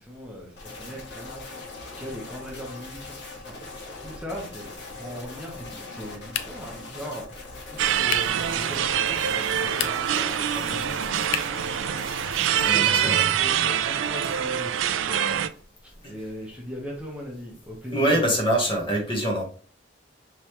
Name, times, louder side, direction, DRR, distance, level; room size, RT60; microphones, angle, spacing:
voice 1, 0.0-1.7 1.9-3.5 4.0-12.0 12.3-18.2, equal, 5° right, 1.1 m, -39 dB
sound 1, 0.6-12.7, left 3 dB, 65° left, 1.6 m, -41 dB
sound 2, 6.3-6.8 8.1-8.4 9.6-10.2 11.3-11.7, left 9 dB, 90° left, 0.5 m, -32 dB
sound 3, 7.8-15.5, right 9 dB, 85° right, 0.4 m, -25 dB
voice 2, 12.6-13.2 16.0-16.1 17.9-19.4, right 1 dB, 25° left, 1.4 m, -24 dB
5.5 x 3.3 x 3.0 m
head